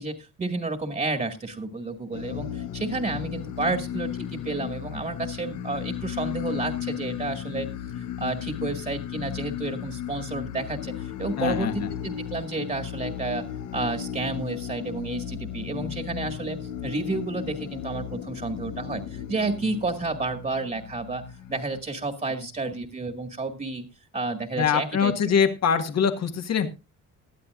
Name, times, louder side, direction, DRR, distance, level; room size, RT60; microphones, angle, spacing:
voice 1, 0.0-7.7 8.2-13.4 13.7-21.2 21.5-23.9 24.1-25.1, right 3 dB, 30° right, 6 dB, 2.0 m, -31 dB
sound 1, 2.1-21.8, left 9 dB, 85° left, 1.2 m, -35 dB
voice 2, 11.4-11.9 24.6-26.7, left 7 dB, 60° left, 7 dB, 1.7 m, -24 dB
19.0 x 12.0 x 2.5 m, 0.27 s
cardioid pair, 90°, 30 cm